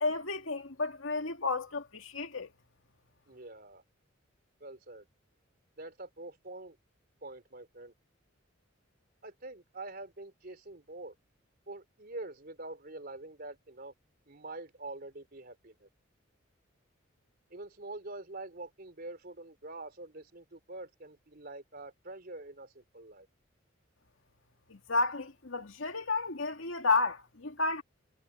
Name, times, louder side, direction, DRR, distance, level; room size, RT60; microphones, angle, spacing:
voice 1, 0.0-2.5 24.7-27.8, left 3 dB, 85° left, 2.1 m, -32 dB
voice 2, 3.3-3.8 4.6-5.1 5.8-6.8 7.2-7.9 9.2-11.1 11.7-13.9 14.3-15.9 17.5-23.3, right 2 dB, 50° right, 3.8 m, -45 dB
head